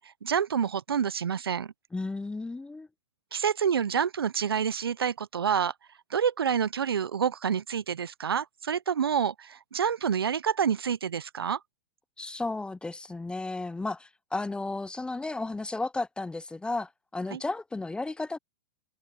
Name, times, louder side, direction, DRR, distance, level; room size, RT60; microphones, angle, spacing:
voice 1, 0.0-1.7 3.3-5.7 6.1-11.6 17.3-17.4, right 7 dB, 80° right, 0.9 m, -28 dB
voice 2, 1.9-2.9 12.2-18.4, left 2 dB, 5° left, 0.7 m, -33 dB
hypercardioid pair, 105°, 12 cm